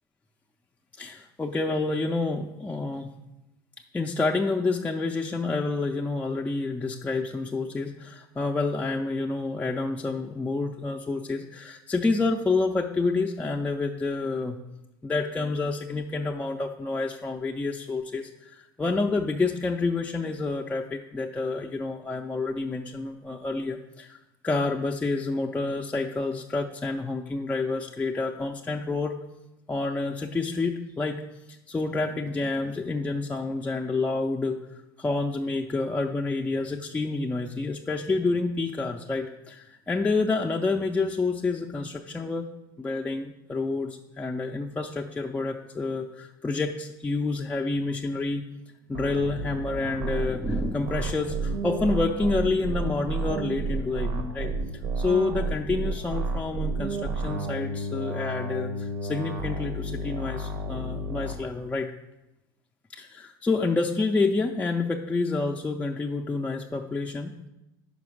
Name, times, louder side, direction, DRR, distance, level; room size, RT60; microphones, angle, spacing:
voice 1, 1.0-3.1 3.9-14.6 15.0-24.2 24.4-29.2 29.7-31.2 31.5-34.6 35.0-42.5 42.8-48.4 48.9-54.5 55.0-61.9 62.9-67.4, left 3 dB, 10° left, 1 dB, 0.4 m, -28 dB
sound 1, 48.9-61.3, right 2 dB, 70° right, 0.7 m, -31 dB
5.2 x 4.8 x 6.2 m, 0.94 s
supercardioid pair, 100°, 11 cm